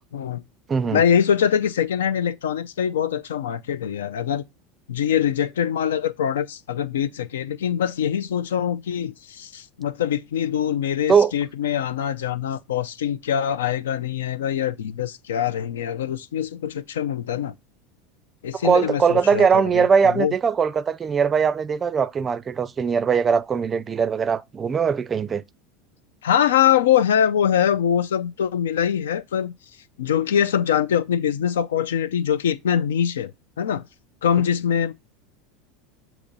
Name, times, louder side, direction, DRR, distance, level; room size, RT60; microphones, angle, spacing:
voice 1, 0.1-0.4 0.9-4.4 4.9-17.5 18.4-19.9 20.1-20.3 26.2-29.5 30.0-33.3 33.6-33.9 34.2-34.9, left 9 dB, 80° left, 0.5 m, -23 dB
voice 2, 0.7-1.0 11.1-11.3 18.6-25.4, right 6 dB, 30° right, 0.4 m, -20 dB
7.1 x 3.0 x 5.1 m
hypercardioid pair, 85°, 0 cm